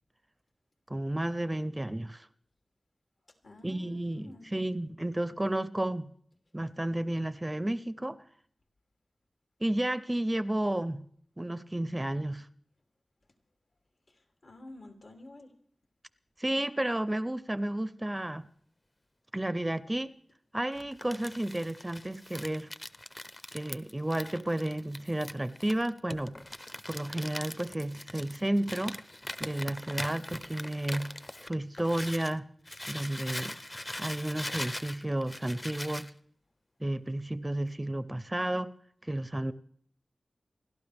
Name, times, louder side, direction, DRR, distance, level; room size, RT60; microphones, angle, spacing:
voice 1, 0.9-2.3 3.6-6.1 6.5-8.2 9.6-11.0 11.4-12.5 16.4-18.5 19.3-20.1 20.5-22.7 23.5-26.3 26.9-29.0 29.4-31.1 31.4-32.5 32.9-33.6 34.0-36.1 36.8-38.7 39.0-39.5, right 1 dB, 15° right, 0.5 m, -32 dB
voice 2, 3.4-4.5 14.1-15.5, left 2 dB, 70° left, 2.9 m, -50 dB
Crumpling crinkling, 20.7-32.3 32.6-36.1, left 1 dB, 25° left, 0.7 m, -41 dB
29.0 x 12.0 x 3.5 m
wide cardioid pair, 95°, 0 cm